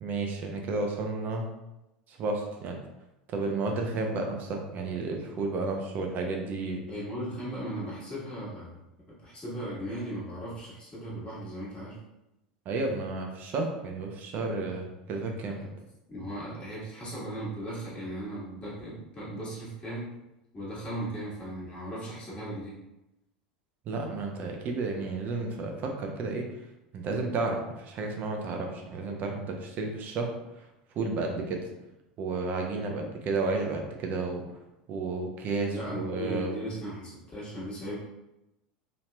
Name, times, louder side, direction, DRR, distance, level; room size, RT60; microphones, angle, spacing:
voice 1, 0.0-1.4 2.1-2.8 3.3-6.8 12.7-15.6 23.9-26.5 26.9-30.3 30.6-30.7 30.9-31.7 32.2-34.4 34.9-36.5, right 3 dB, 40° right, 2 dB, 0.6 m, -32 dB
voice 2, 6.9-8.8 9.1-12.0 15.5-15.6 16.1-20.1 20.5-22.7 33.0-33.1 35.7-38.0, right 1 dB, 25° left, -7 dB, 1.4 m, -37 dB
3.0 x 2.8 x 2.2 m, 0.93 s
figure-of-eight pair, 80°, 5 cm